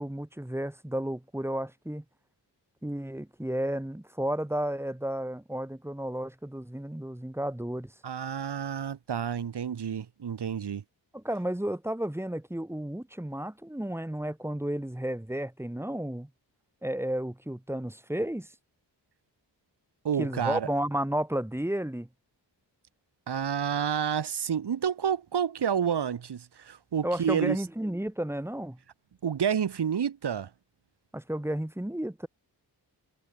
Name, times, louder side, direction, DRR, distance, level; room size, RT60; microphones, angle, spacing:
voice 1, 0.0-2.0 2.8-7.9 11.1-16.3 16.8-18.5 20.2-22.1 27.0-28.8 31.1-32.3, right 1 dB, 5° right, 2.2 m, -32 dB
voice 2, 8.0-10.8 20.0-20.7 23.3-27.6 29.2-30.5, right 8 dB, 65° right, 2.4 m, -29 dB
wide cardioid pair, 140°, 43 cm